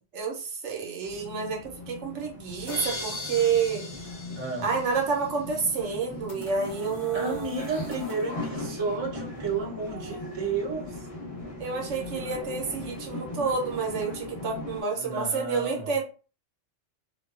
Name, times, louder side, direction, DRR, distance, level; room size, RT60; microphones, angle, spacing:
voice 1, 0.1-3.9 4.6-7.5 9.9-10.4 11.6-16.0, right 5 dB, 75° right, 1.0 m, -29 dB
sound 1, 1.0-14.8, left 2 dB, 30° left, 1.0 m, -39 dB
sound 2, 2.7-5.5, left 2 dB, 75° left, 1.0 m, -38 dB
voice 2, 4.4-4.7 7.1-11.1 15.0-15.9, right 4 dB, 25° right, 0.7 m, -32 dB
sound 3, 5.9-8.4, right 2 dB, 90° left, 1.2 m, -46 dB
2.5 x 2.2 x 2.3 m
omnidirectional pair, 1.2 m